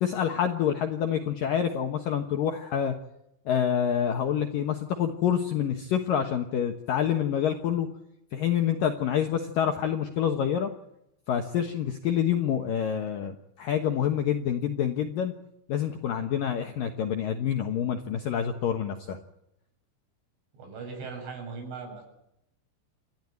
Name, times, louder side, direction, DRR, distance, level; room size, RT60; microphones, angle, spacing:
voice 1, 0.0-2.9 3.5-7.9 8.3-10.7 11.3-15.3 15.7-19.2, left 9 dB, 70° left, 5 dB, 2.1 m, -27 dB
voice 2, 20.6-22.0, right 4 dB, 70° right, 3 dB, 9.5 m, -39 dB
28.5 x 13.5 x 9.7 m, 0.82 s
omnidirectional pair, 5.7 m